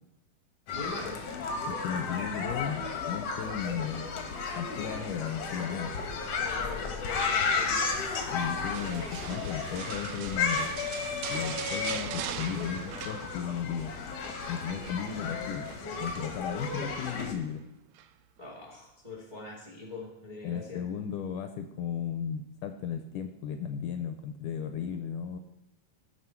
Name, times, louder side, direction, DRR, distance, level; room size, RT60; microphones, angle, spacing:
sound 1, 0.7-17.3, left 5 dB, 60° left, 1.8 m, -33 dB
voice 1, 0.7-1.2 6.4-7.9 18.4-20.8, left 3 dB, 20° right, -2 dB, 1.4 m, -42 dB
voice 2, 1.6-4.1 4.6-6.0 8.3-10.8 11.3-13.9 14.5-15.7 16.0-17.6 20.4-25.4, left 8 dB, 75° left, 7 dB, 2.1 m, -35 dB
sound 2, 5.8-10.9, left 4 dB, 10° left, 1.0 m, -47 dB
sound 3, 8.7-13.8 14.0-14.4 14.8-15.9 17.0-17.4 18.0-18.1, right 11 dB, 85° right, 1.7 m, -41 dB
16.5 x 5.9 x 4.5 m, 0.90 s
omnidirectional pair, 4.0 m